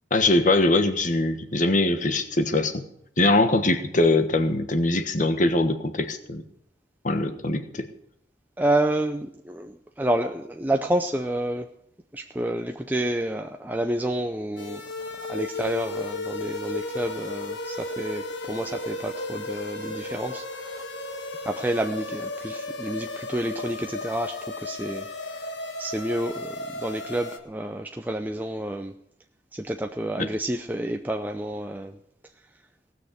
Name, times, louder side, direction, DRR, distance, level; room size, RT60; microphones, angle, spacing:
voice 1, 0.1-2.8 3.2-6.4 7.0-7.9 30.2-30.3, left 2 dB, 40° left, 8 dB, 1.3 m, -22 dB
voice 2, 8.6-11.7 12.1-14.8 15.2-20.8 21.4-25.5 25.8-28.9 29.5-32.0, right 1 dB, 10° right, 4 dB, 0.6 m, -29 dB
sound 1, 14.6-27.4, left 2 dB, 75° left, 1.7 m, -34 dB
18.5 x 6.5 x 8.2 m, 0.72 s
head